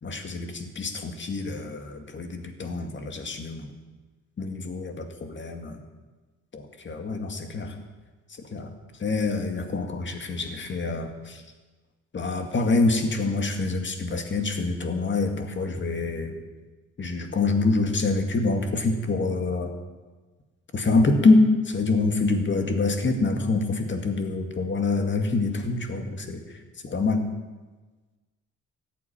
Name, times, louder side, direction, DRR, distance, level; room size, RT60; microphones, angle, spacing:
voice 1, 0.0-3.7 4.4-5.8 6.5-7.8 8.5-8.7 9.0-11.4 12.1-16.4 17.0-19.7 20.7-26.4 26.8-27.2, left 3 dB, 40° left, 5 dB, 2.1 m, -25 dB
14.0 x 8.6 x 8.9 m, 1.3 s
cardioid pair, 90°, 30 cm